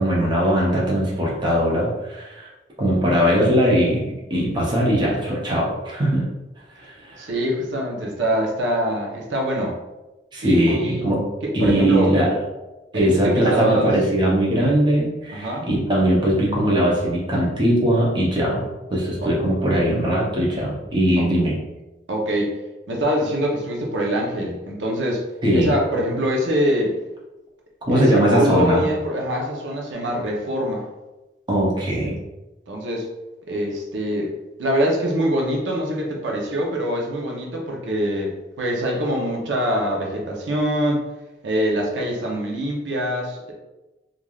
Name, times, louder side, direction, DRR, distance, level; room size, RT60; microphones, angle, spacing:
voice 1, 0.0-2.5 2.8-6.3 6.7-7.3 10.3-11.3 11.5-12.4 12.9-21.6 25.4-25.8 27.9-28.8 31.5-32.2, equal, 25° right, -4 dB, 0.6 m, -20 dB
voice 2, 7.2-9.8 10.4-11.1 11.4-12.1 12.9-13.9 15.3-15.7 19.2-19.3 21.2-21.3 22.1-22.5 22.9-25.2 25.5-27.0 27.9-30.8 32.7-33.1 33.5-34.3 34.6-41.0 41.4-43.5, equal, 85° right, -1 dB, 0.6 m, -24 dB
3.2 x 2.4 x 2.3 m, 1.0 s
head